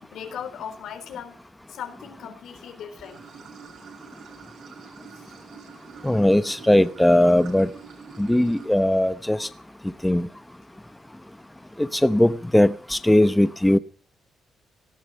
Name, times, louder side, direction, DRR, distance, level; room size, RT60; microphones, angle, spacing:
voice 1, 0.0-1.4 1.7-3.2, left 8 dB, 75° left, 8 dB, 3.8 m, -37 dB
Water / Sink (filling or washing), 3.0-8.7, right 7 dB, 75° right, 6.0 m, -46 dB
voice 2, 6.0-7.7 8.2-9.5 10.0-10.3 11.8-13.8, left 1 dB, 5° left, 12 dB, 0.9 m, -19 dB
18.0 x 14.0 x 5.7 m, 0.41 s
cardioid pair, 90°, 0 cm